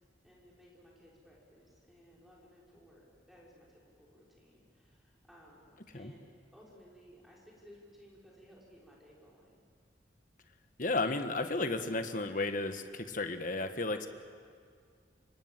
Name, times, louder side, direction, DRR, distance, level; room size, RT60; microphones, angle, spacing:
voice 1, 0.2-9.5, equal, ahead, -5 dB, 6.1 m, -59 dB
voice 2, 10.8-14.1, left 2 dB, 45° left, 8 dB, 1.4 m, -33 dB
28.0 x 24.5 x 7.5 m, 2.1 s
head